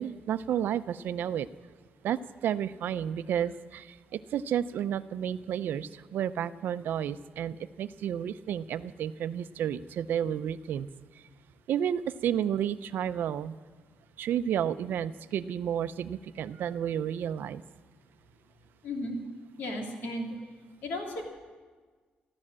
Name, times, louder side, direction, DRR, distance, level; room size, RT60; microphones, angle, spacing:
voice 1, 0.0-1.5 2.0-10.9 11.7-13.6 14.2-17.6, right 9 dB, 80° right, 13 dB, 0.5 m, -31 dB
voice 2, 18.8-19.2 19.6-20.4 20.8-21.2, left 1 dB, 90° left, 0 dB, 3.0 m, -34 dB
13.5 x 13.5 x 7.5 m, 1.4 s
cardioid pair, 110°, 3 cm